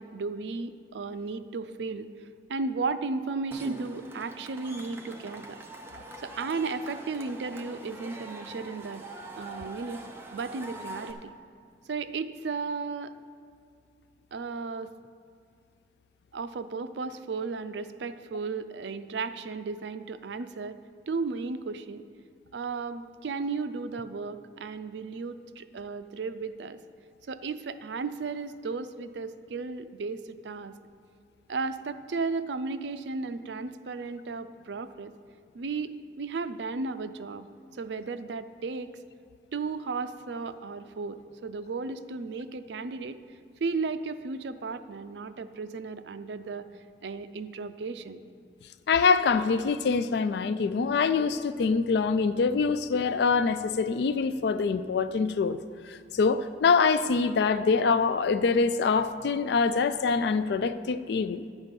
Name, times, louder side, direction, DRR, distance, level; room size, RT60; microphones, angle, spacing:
voice 1, 0.0-2.1 2.5-5.6 6.2-9.0 9.4-10.0 10.3-11.3 11.9-13.1 14.3-14.9 16.3-20.8 21.1-22.0 22.5-26.8 27.3-30.7 31.5-35.1 35.5-37.4 37.7-38.9 39.5-43.2 43.6-46.7 47.0-48.2, right 4 dB, 75° right, 0.5 m, -34 dB
Cheering / Crowd, 3.5-11.1, right 1 dB, 15° right, 0.7 m, -43 dB
voice 2, 48.9-55.6 55.9-61.4, left 5 dB, 65° left, 0.3 m, -25 dB
10.5 x 8.1 x 5.2 m
head